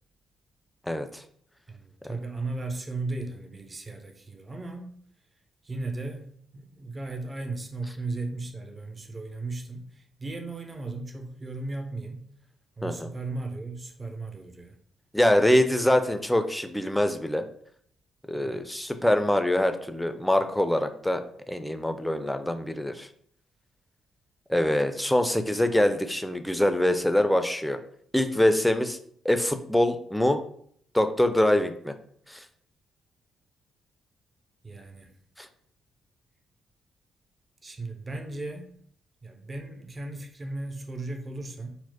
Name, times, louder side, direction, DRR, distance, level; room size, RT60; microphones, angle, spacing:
voice 1, 0.9-1.2 12.8-13.1 15.1-17.4 18.3-21.2 21.5-23.1 24.5-27.8 28.1-29.0 29.2-30.4 30.9-31.9 32.3-32.4 35.4-35.5, left 1 dB, 5° left, 8 dB, 0.4 m, -24 dB
voice 2, 1.7-5.0 5.6-12.2 12.8-14.8 18.4-18.8 34.6-35.1 37.6-38.8 39.2-41.8, right 2 dB, 35° right, 4 dB, 0.6 m, -36 dB
4.2 x 2.1 x 2.8 m, 0.63 s
hypercardioid pair, 40°, 0 cm